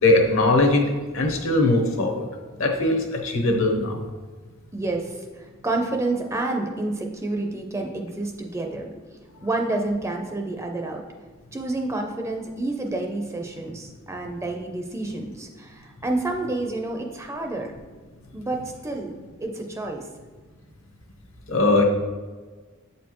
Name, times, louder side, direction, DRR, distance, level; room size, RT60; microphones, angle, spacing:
voice 1, 0.0-0.8 1.1-2.2 2.6-4.0 21.5-21.8, left 2 dB, 70° left, 2 dB, 0.9 m, -20 dB
voice 2, 4.7-8.9 9.4-11.0 11.5-17.7 18.3-19.1 19.4-20.1, right 2 dB, 15° right, 2 dB, 0.4 m, -29 dB
7.7 x 4.3 x 2.9 m, 1.4 s
head